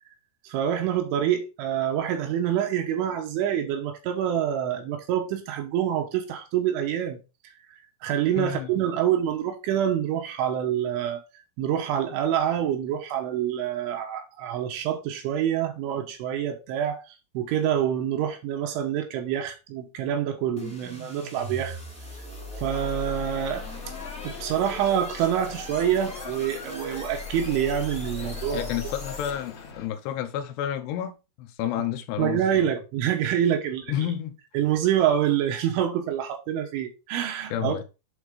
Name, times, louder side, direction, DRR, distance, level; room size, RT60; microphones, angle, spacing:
voice 1, 0.4-7.2 8.0-11.2 11.6-17.0 17.3-21.8 22.6-23.6 24.2-28.6 32.2-34.0 34.5-37.8, right 10 dB, 75° right, 3.3 m, -26 dB
voice 2, 8.4-8.7 28.5-32.7 33.9-34.4 37.5-37.8, left 10 dB, 75° left, 2.5 m, -30 dB
sound 1, 20.6-29.7, left 2 dB, 5° left, 0.6 m, -38 dB
sound 2, 22.7-29.9, left 6 dB, 60° left, 2.5 m, -42 dB
8.2 x 4.3 x 4.9 m
omnidirectional pair, 5.9 m